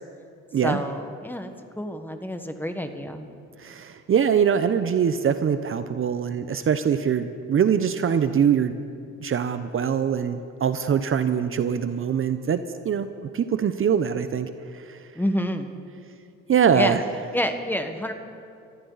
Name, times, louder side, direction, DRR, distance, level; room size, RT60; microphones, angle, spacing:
voice 1, 0.6-3.3 15.1-15.7 16.7-16.9 17.3-18.1, equal, 5° left, 6 dB, 1.4 m, -28 dB
voice 2, 3.6-8.7 9.2-12.6 12.8-13.1 13.3-15.1 16.5-17.0, right 7 dB, 45° right, 10 dB, 0.7 m, -23 dB
25.0 x 14.0 x 4.1 m, 2.4 s
cardioid pair, 90°, 30 cm